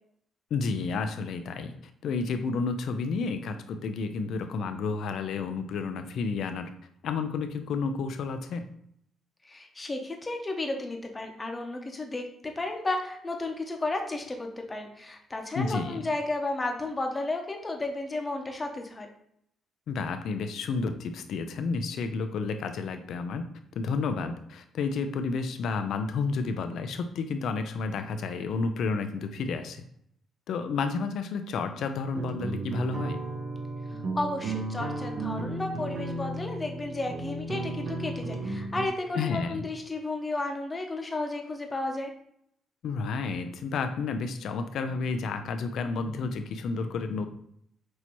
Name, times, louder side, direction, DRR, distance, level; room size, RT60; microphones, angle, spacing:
voice 1, 0.5-1.7 2.0-6.7 7.0-8.6 15.5-16.0 19.9-23.5 23.8-29.8 30.5-33.2 39.1-39.7 42.8-47.3, left 4 dB, 70° left, 8 dB, 0.4 m, -31 dB
voice 2, 9.4-19.1 34.1-42.1, left 2 dB, 20° left, 3 dB, 0.9 m, -33 dB
sound 1, 32.1-38.9, right 2 dB, 55° right, 0.6 m, -34 dB
6.2 x 2.8 x 3.0 m, 0.71 s
cardioid pair, 90°, 0 cm